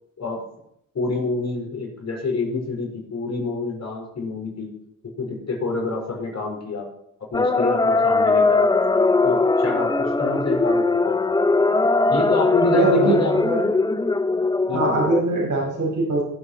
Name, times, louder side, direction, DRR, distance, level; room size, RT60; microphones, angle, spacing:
voice 1, 0.9-4.7 5.2-6.9 7.3-8.8 9.2-11.2 12.1-13.4 13.7-13.8 14.7-15.1, left 3 dB, 50° left, -1 dB, 4.8 m, -27 dB
sound 1, 7.3-15.2, left 3 dB, 10° left, 0.5 m, -20 dB
voice 2, 12.7-13.7 14.7-16.2, right 2 dB, 55° right, -3 dB, 5.4 m, -22 dB
16.0 x 7.4 x 4.3 m, 0.79 s
supercardioid pair, 60°, 35 cm